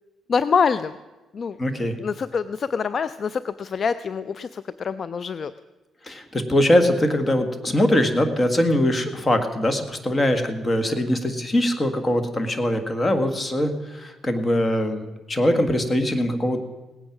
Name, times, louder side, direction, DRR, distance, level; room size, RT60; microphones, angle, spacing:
voice 1, 0.3-1.0 1.3-1.6 2.0-5.5, left 6 dB, 50° left, 14 dB, 0.4 m, -25 dB
voice 2, 1.6-2.0 6.0-16.6, left 1 dB, 25° left, 8 dB, 1.6 m, -22 dB
18.0 x 8.9 x 6.0 m, 1.2 s
cardioid pair, 90°, 0 cm